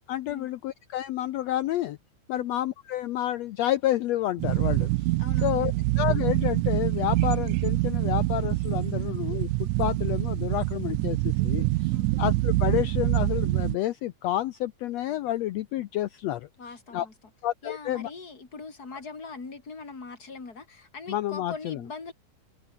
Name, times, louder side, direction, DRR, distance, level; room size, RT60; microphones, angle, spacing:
voice 1, 0.1-2.0 2.3-4.9 5.4-16.5 16.9-17.1 17.4-18.1 21.1-21.8, left 13 dB, 75° left, 1.6 m, -29 dB
sound 1, 4.4-13.8, right 20 dB, 80° right, 1.9 m, -25 dB
voice 2, 5.2-5.8 11.9-12.1 16.6-17.1 17.6-22.1, left 4 dB, 30° left, 4.4 m, -41 dB
omnidirectional pair, 3.7 m